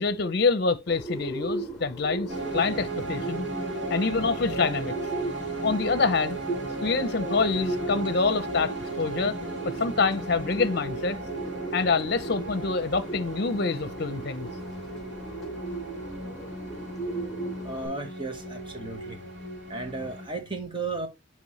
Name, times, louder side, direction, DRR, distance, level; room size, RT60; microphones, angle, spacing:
voice 1, 0.0-3.5 3.9-4.9 5.6-6.4 6.8-9.4 9.6-11.2 11.7-14.5, left 4 dB, 55° left, 0.6 m, -26 dB
Bird, 0.9-17.9, right 2 dB, ahead, 2.6 m, -37 dB
sound 1, 2.3-20.3, right 2 dB, 70° right, 2.1 m, -35 dB
voice 2, 17.6-19.2 19.7-21.1, right 3 dB, 25° right, 1.3 m, -34 dB
9.5 x 3.2 x 3.1 m
head